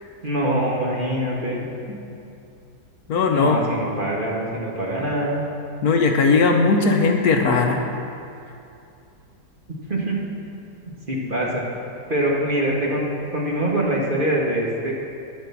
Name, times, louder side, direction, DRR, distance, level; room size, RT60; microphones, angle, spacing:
voice 1, 0.2-1.7 3.3-5.4 9.9-10.2 10.8-11.6 12.1-14.9, right 1 dB, 30° right, -3 dB, 1.5 m, -24 dB
voice 2, 3.1-3.6 5.8-7.8, left 4 dB, 65° left, 3 dB, 1.2 m, -18 dB
9.9 x 7.8 x 7.0 m, 2.6 s
omnidirectional pair, 1.8 m